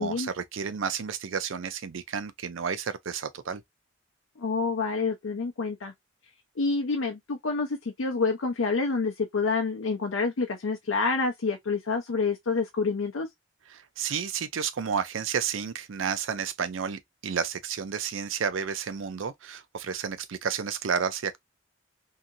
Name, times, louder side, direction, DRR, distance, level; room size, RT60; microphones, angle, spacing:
voice 1, 0.0-3.6 13.7-21.4, right 6 dB, 85° right, 0.5 m, -31 dB
voice 2, 4.4-5.9 6.6-13.3, left 4 dB, 90° left, 0.6 m, -28 dB
2.8 x 2.5 x 2.6 m
head